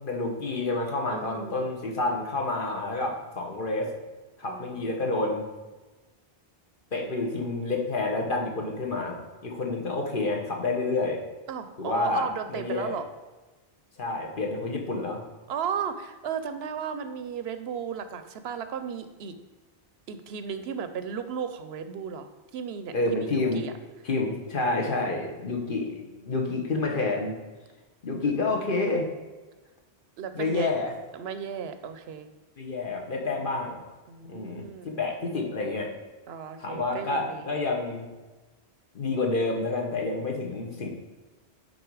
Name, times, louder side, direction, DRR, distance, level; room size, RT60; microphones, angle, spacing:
voice 1, 0.0-3.9 4.4-5.5 6.9-11.2 11.8-13.0 14.0-15.2 22.9-23.6 24.0-27.3 28.0-29.1 30.3-30.9 32.6-33.8 34.3-35.9 36.6-38.1 38.9-40.9, left 3 dB, 55° left, 1 dB, 1.3 m, -29 dB
voice 2, 1.1-1.7 4.4-4.9 11.5-13.1 15.5-19.4 20.1-23.7 25.5-26.3 28.2-28.3 30.2-30.7 31.1-32.3 34.1-35.3 36.3-37.5 40.5-40.9, right 7 dB, 75° right, 9 dB, 0.8 m, -35 dB
9.2 x 4.1 x 4.7 m, 1.2 s
omnidirectional pair, 1.1 m